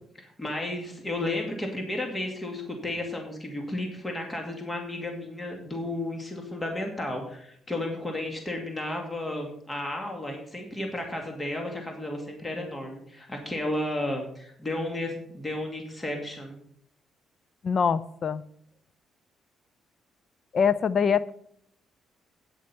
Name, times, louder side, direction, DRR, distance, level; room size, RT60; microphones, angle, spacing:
voice 1, 0.2-16.6, left 1 dB, 20° left, 2 dB, 2.3 m, -33 dB
voice 2, 17.6-18.4 20.5-21.3, left 6 dB, 50° left, 17 dB, 0.5 m, -24 dB
9.3 x 8.3 x 5.6 m, 0.67 s
cardioid pair, 90°, 0 cm